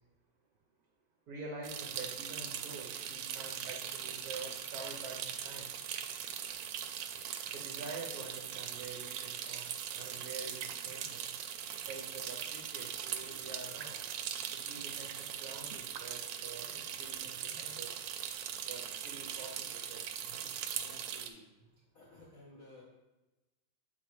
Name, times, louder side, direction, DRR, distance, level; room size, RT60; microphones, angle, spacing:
voice 1, 1.3-5.8 7.5-11.3 11.9-14.0 14.5-18.0 18.6-20.5, right 3 dB, 60° right, -1 dB, 1.0 m, -47 dB
sound 1, 1.6-21.3, right 9 dB, 90° right, 1.5 m, -40 dB
voice 2, 20.4-21.5 21.9-22.8, left 2 dB, 45° left, -4 dB, 1.3 m, -56 dB
8.4 x 4.2 x 3.1 m, 1.1 s
omnidirectional pair, 2.3 m